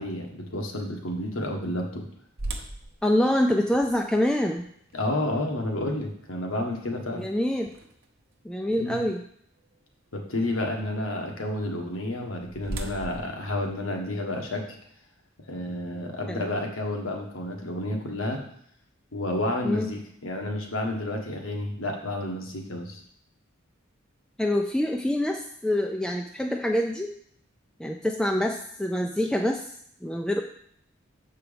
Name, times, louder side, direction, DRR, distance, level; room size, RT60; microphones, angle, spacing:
voice 1, 0.0-2.1 4.9-7.3 8.8-9.0 10.1-14.8 15.5-18.4 19.1-23.0, left 1 dB, 80° left, 1 dB, 1.5 m, -30 dB
sound 1, 2.4-8.3 8.9-9.0 9.6-9.8 11.9-14.5, right 2 dB, 50° right, 0.8 m, -40 dB
voice 2, 3.0-4.6 7.1-7.7 8.4-9.2 16.3-16.4 19.6-19.9 24.4-27.1 27.8-29.7 30.0-30.4, left 1 dB, 5° left, 1 dB, 0.3 m, -25 dB
7.2 x 4.6 x 5.1 m, 0.67 s
head